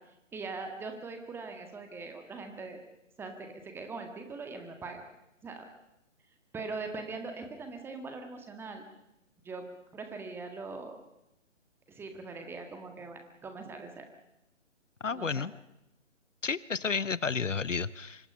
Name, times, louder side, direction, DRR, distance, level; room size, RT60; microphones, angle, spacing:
voice 1, 0.3-2.8 3.2-5.1 5.4-5.7 6.5-8.8 9.4-9.7 9.9-11.0 11.9-14.1 15.1-15.5, right 3 dB, 5° right, 5 dB, 1.7 m, -41 dB
voice 2, 15.0-15.5 16.4-18.3, left 5 dB, 80° left, 19 dB, 0.9 m, -31 dB
25.5 x 24.0 x 5.6 m, 0.86 s
figure-of-eight pair, 140°, 37 cm